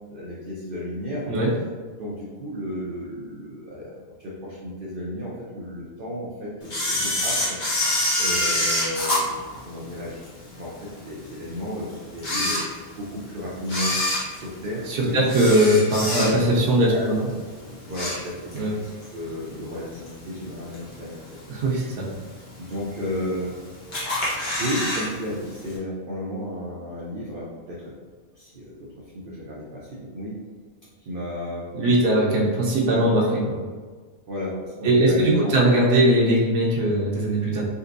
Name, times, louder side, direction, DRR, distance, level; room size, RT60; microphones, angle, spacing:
voice 1, 0.1-1.3 2.0-7.6 8.2-9.3 9.6-10.2 10.5-12.6 13.0-14.0 14.3-15.2 16.1-16.3 16.9-17.1 17.9-21.2 21.7-21.9 22.6-23.6 24.3-27.9 28.3-30.4 31.1-31.7 32.9-33.3 34.3-35.6, left 1 dB, 55° right, -6 dB, 0.6 m, -33 dB
Camera, 6.7-10.3 10.8-10.9 11.6-11.7 12.1-13.2 13.6-16.6 17.0-17.3 17.6-18.7 19.0-19.1 20.1-20.2 20.7-21.1 21.6-21.7 21.9-22.0 22.1-22.2 23.0-23.5 23.9-25.1 25.3-25.4 25.7-25.8, left 1 dB, 35° left, 0.9 m, -25 dB
voice 2, 14.9-17.2 18.6-18.7 21.5-22.1 31.7-33.6 34.8-37.6, right 1 dB, 80° right, -4 dB, 1.2 m, -20 dB
3.9 x 2.5 x 2.5 m, 1.5 s
omnidirectional pair, 1.6 m